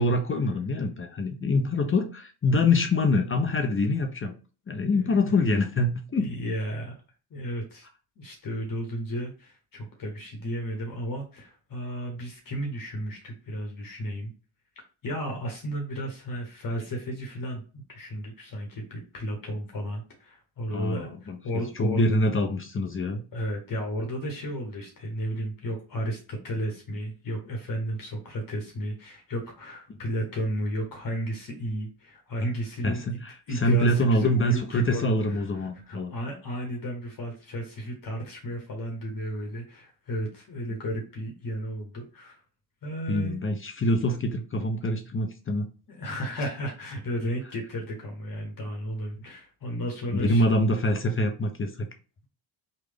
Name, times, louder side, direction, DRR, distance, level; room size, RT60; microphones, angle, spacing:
voice 1, 0.0-4.3 4.7-6.3 20.7-23.2 32.8-36.1 43.1-45.7 50.1-51.9, left 1 dB, 25° left, 4 dB, 0.6 m, -25 dB
voice 2, 1.5-1.9 4.9-5.3 6.2-6.9 7.3-7.8 8.2-14.3 15.0-22.0 23.3-33.0 33.5-42.4 42.8-43.4 45.9-50.5, equal, 45° left, 2 dB, 1.1 m, -33 dB
3.2 x 2.4 x 3.5 m, 0.36 s
supercardioid pair, 65°, 47 cm